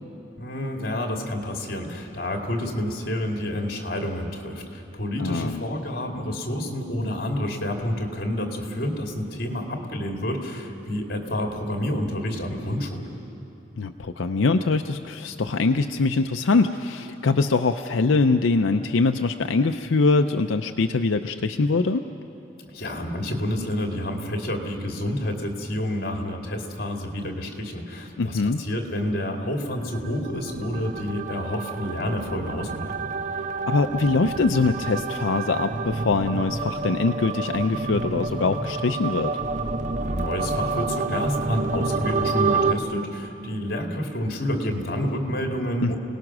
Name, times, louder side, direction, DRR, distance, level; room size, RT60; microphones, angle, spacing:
voice 1, 0.4-13.2 22.7-32.9 39.9-46.0, left 1 dB, 50° left, 2 dB, 2.5 m, -29 dB
voice 2, 5.2-5.6 13.8-22.0 28.2-28.6 33.7-39.3 45.8-45.9, left 3 dB, 85° left, 6 dB, 0.6 m, -23 dB
sound 1, 29.9-42.7, right 4 dB, 40° right, 0.7 m, -28 dB
28.5 x 18.5 x 6.1 m, 3.0 s
head